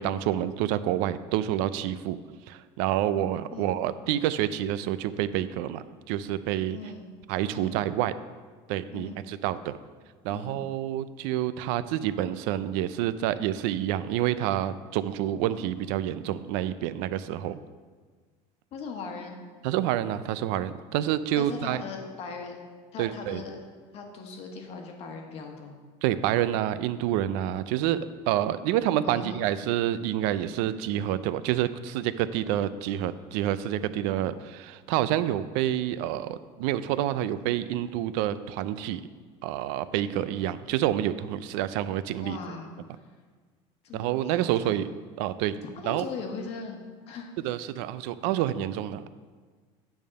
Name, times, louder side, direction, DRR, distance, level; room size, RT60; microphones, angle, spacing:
voice 1, 0.0-2.2 2.5-6.8 7.3-8.1 8.7-9.7 10.2-17.6 19.6-21.8 23.0-23.4 26.0-28.0 28.3-39.0 39.4-42.4 43.9-44.9 45.2-45.5 45.8-46.0 47.4-49.1, right 12 dB, 80° right, 14 dB, 0.4 m, -28 dB
voice 2, 3.5-3.8 6.7-7.1 7.5-7.8 8.9-9.2 10.3-10.6 18.7-19.4 21.4-22.7 22.9-23.6 23.9-25.8 29.0-29.4 42.2-42.7 43.8-44.8 45.6-47.3, left 4 dB, 50° left, 3 dB, 1.2 m, -39 dB
8.9 x 3.5 x 6.3 m, 1.5 s
cardioid pair, 140°, 13 cm